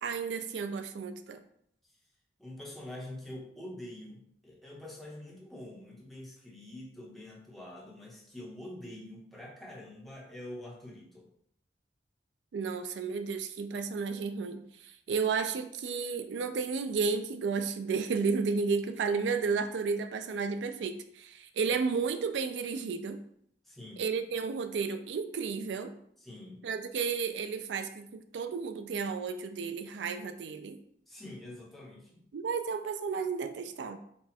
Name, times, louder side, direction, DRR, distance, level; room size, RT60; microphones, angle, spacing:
voice 1, 0.0-1.4 12.5-23.2 24.0-25.9 26.6-30.8 32.3-34.0, right 5 dB, 85° right, 9 dB, 0.4 m, -32 dB
voice 2, 2.4-11.3 23.6-24.0 26.2-26.7 31.1-32.2, left 1 dB, ahead, -4 dB, 0.9 m, -45 dB
4.2 x 2.3 x 4.2 m, 0.68 s
head